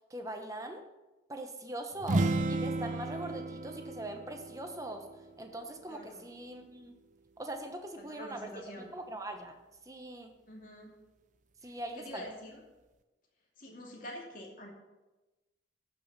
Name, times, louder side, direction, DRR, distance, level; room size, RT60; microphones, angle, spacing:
voice 1, 0.1-0.8 1.3-5.0 5.4-7.0 7.4-9.6 9.9-10.3 11.6-12.3, right 1 dB, 20° right, 5 dB, 1.0 m, -41 dB
sound 1, 2.0-5.7, right 2 dB, 40° right, 0.6 m, -33 dB
voice 2, 5.9-6.3 8.0-8.9 10.5-10.9 11.6-12.6 13.6-14.7, left 1 dB, 45° left, -1 dB, 2.6 m, -46 dB
14.0 x 6.2 x 5.6 m, 1.1 s
head